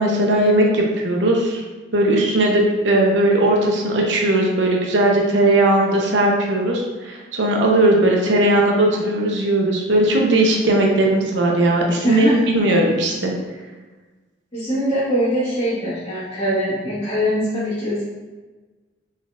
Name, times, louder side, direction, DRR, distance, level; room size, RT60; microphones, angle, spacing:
voice 1, 0.0-1.6 1.9-13.3, right 1 dB, 85° right, 0 dB, 0.7 m, -18 dB
voice 2, 12.0-12.4 14.5-18.0, equal, 30° left, -13 dB, 1.3 m, -22 dB
4.0 x 3.9 x 2.4 m, 1.3 s
head